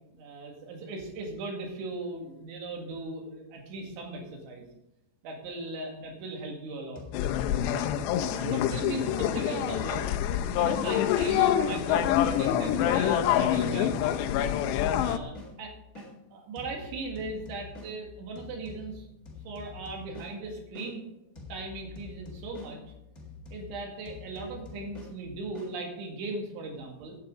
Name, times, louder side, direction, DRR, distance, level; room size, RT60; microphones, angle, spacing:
voice 1, 0.1-4.7 5.2-7.0 7.6-7.9 8.2-10.1 10.6-14.1 14.9-16.1 16.3-19.1 19.4-21.0 21.5-22.8 23.5-27.2, right 3 dB, 90° right, 1 dB, 4.5 m, -38 dB
sound 1, 6.9-11.3 11.7-16.1 16.5-20.9 21.3-25.7, left 4 dB, 30° left, 1.9 m, -46 dB
sound 2, 7.1-15.2, left 10 dB, 80° left, 2.8 m, -26 dB
16.5 x 9.7 x 3.9 m, 0.89 s
omnidirectional pair, 5.2 m